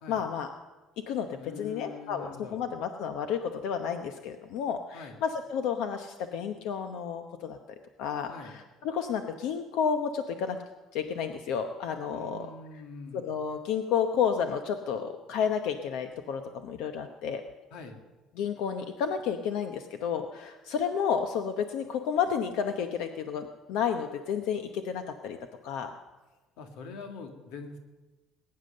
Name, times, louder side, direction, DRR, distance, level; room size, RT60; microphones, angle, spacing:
voice 1, 0.1-0.5 1.1-7.6 8.0-10.6 10.9-12.5 13.1-17.4 18.4-25.4 25.6-25.9, left 7 dB, 65° left, 7 dB, 0.9 m, -31 dB
voice 2, 1.4-2.6 4.9-5.2 8.3-8.6 12.1-13.3 17.7-18.0 26.6-27.8, left 4 dB, 85° left, 5 dB, 2.1 m, -43 dB
21.0 x 9.6 x 6.6 m, 1.2 s
cardioid pair, 175°, 0 cm